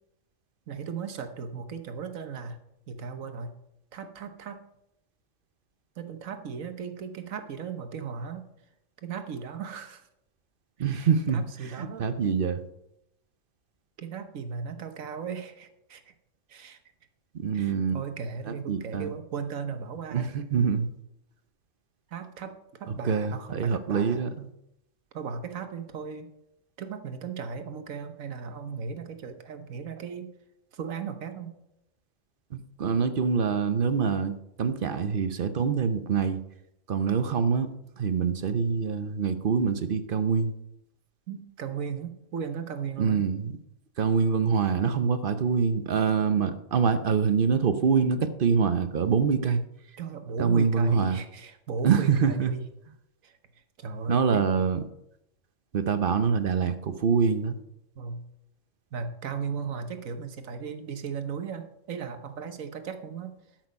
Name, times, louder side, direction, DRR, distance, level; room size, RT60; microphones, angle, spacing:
voice 1, 0.7-2.6 2.9-3.5 3.9-4.6 6.0-8.4 9.0-10.0 10.8-12.0 14.0-16.1 16.5-16.8 17.5-20.3 22.1-24.2 25.1-26.3 26.8-30.3 30.7-31.5 41.3-43.2 50.0-52.7 53.2-53.4 53.8-54.5 58.0-58.2 58.9-63.3, right 6 dB, 85° right, 8 dB, 1.4 m, -36 dB
voice 2, 10.8-11.4 11.8-12.6 17.3-18.0 18.5-19.1 20.1-20.9 22.9-24.5 32.5-36.4 36.9-37.7 38.0-40.5 43.0-43.6 44.0-49.6 50.4-51.2 51.8-52.5 54.1-54.8 55.7-57.6, right 6 dB, 50° right, 10 dB, 0.8 m, -25 dB
12.5 x 6.1 x 5.2 m, 0.81 s
omnidirectional pair, 1.4 m